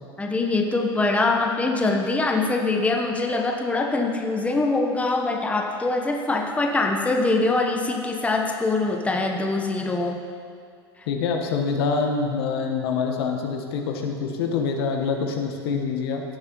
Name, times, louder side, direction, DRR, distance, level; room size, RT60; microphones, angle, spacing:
voice 1, 0.2-10.2, left 3 dB, 10° left, 1 dB, 1.0 m, -23 dB
voice 2, 11.1-16.2, left 5 dB, 65° left, 3 dB, 1.3 m, -25 dB
16.5 x 8.5 x 3.1 m, 2.2 s
hypercardioid pair, 95°, 14 cm